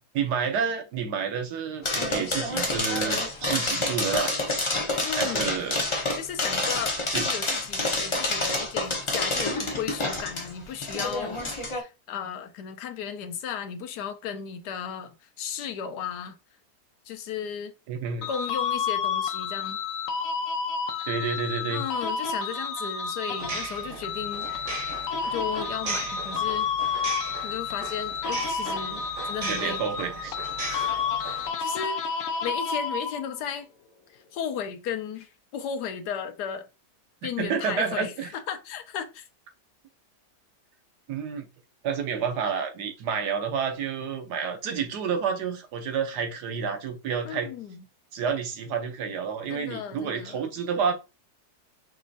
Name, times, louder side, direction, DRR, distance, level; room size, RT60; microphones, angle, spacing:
voice 1, 0.1-4.3 5.1-5.8 7.1-7.2 17.9-18.3 21.1-21.8 29.5-30.4 37.2-38.3 41.1-41.5 41.8-47.5 48.1-50.9, right 6 dB, 75° right, 1.4 m, -29 dB
sound 1, 1.8-11.8, left 2 dB, 35° left, 0.4 m, -28 dB
voice 2, 5.0-5.6 6.1-11.4 11.7-16.4 17.1-17.7 18.3-19.8 21.7-24.5 25.3-27.0 27.4-29.8 30.6-32.1 32.4-33.7 34.1-36.7 37.2-39.3 47.2-47.8 49.5-50.4, left 8 dB, 80° left, 1.2 m, -35 dB
sound 2, 18.2-33.4, left 6 dB, 65° left, 0.9 m, -30 dB
sound 3, 23.4-31.5, right 4 dB, 40° right, 0.9 m, -37 dB
5.4 x 3.1 x 2.7 m
omnidirectional pair, 1.8 m